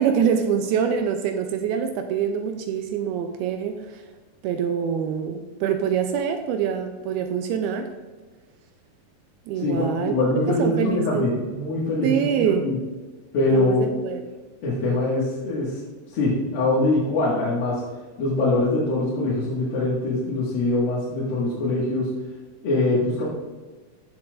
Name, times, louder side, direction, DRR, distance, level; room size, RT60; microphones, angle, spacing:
voice 1, 0.0-4.0 4.4-7.9 9.5-11.3 12.0-12.7 13.5-14.2, right 7 dB, 80° right, 5 dB, 2.4 m, -25 dB
voice 2, 9.6-12.8 13.3-13.9 14.6-15.8 16.1-17.8 18.2-22.1 22.6-23.2, left 2 dB, 65° left, -8 dB, 3.4 m, -23 dB
14.5 x 7.2 x 2.6 m, 1.3 s
omnidirectional pair, 4.8 m